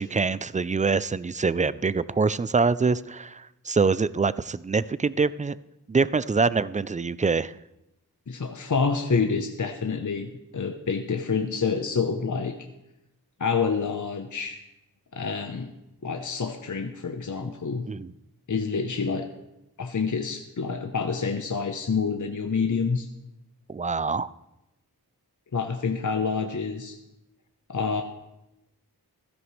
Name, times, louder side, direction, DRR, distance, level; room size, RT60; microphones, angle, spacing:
voice 1, 0.0-5.6 5.9-7.5 17.9-18.1 23.7-24.3, right 4 dB, 20° right, 18 dB, 0.3 m, -25 dB
voice 2, 8.3-12.6 13.4-14.6 15.1-15.7 16.0-17.9 18.5-19.3 19.8-23.1 25.5-27.0 27.7-28.0, left 5 dB, 50° left, 5 dB, 0.8 m, -27 dB
15.5 x 13.0 x 3.2 m, 0.91 s
wide cardioid pair, 50°, 39 cm